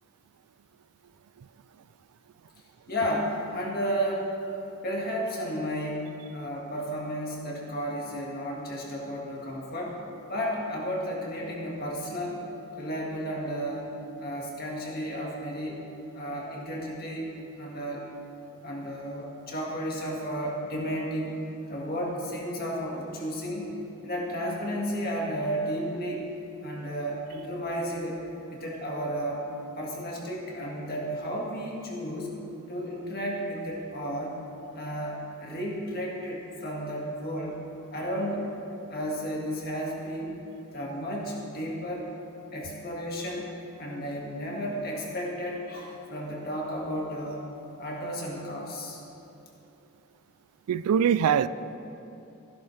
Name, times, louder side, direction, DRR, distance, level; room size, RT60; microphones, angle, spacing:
voice 1, 2.9-4.6 4.8-10.0 10.3-12.4 12.8-15.8 16.1-17.3 17.6-18.1 18.6-21.4 21.7-23.7 24.0-26.3 26.6-28.2 28.5-29.4 29.8-32.3 32.7-34.4 34.7-37.6 37.9-38.4 38.9-40.4 40.7-42.1 42.5-47.5 47.8-49.0, equal, 45° left, -3 dB, 2.0 m, -33 dB
voice 2, 50.7-51.5, right 8 dB, 85° right, 16 dB, 0.3 m, -22 dB
15.5 x 11.0 x 3.3 m, 2.9 s
head